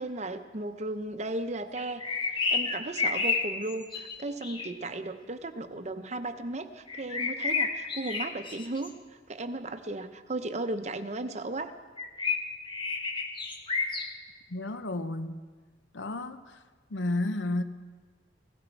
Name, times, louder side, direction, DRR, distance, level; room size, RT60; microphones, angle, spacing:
voice 1, 0.0-2.0 2.3-8.9 9.3-11.7, right 2 dB, 35° right, 0.7 m, -35 dB
sound 1, 1.8-4.7 6.9-8.9 12.0-14.1, left 4 dB, 25° left, 1.0 m, -30 dB
voice 2, 14.5-15.4 15.9-16.6 16.9-17.6, left 2 dB, 75° left, 0.8 m, -32 dB
16.5 x 16.0 x 4.5 m
head